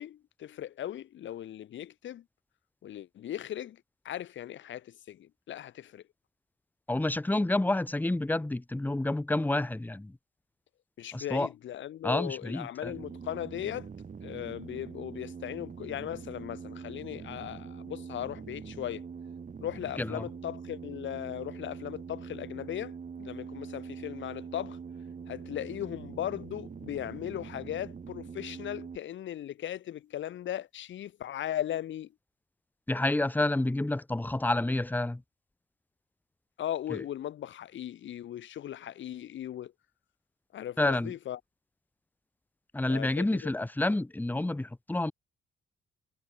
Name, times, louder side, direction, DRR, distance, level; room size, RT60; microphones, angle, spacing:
voice 1, 0.0-2.2 2.8-6.0 11.0-13.9 14.2-19.1 19.6-24.8 25.3-32.1 36.6-39.7 40.5-41.4 42.9-43.5, left 11 dB, 70° left, 3.1 m, -38 dB
voice 2, 6.9-10.1 11.1-11.5 12.0-12.9 20.0-20.2 32.9-35.2 36.9-37.0 40.8-41.1 42.7-45.1, left 2 dB, 10° left, 1.3 m, -29 dB
sound 1, 12.9-29.0, right 6 dB, 40° right, 5.4 m, -43 dB
cardioid pair, 90°, 20 cm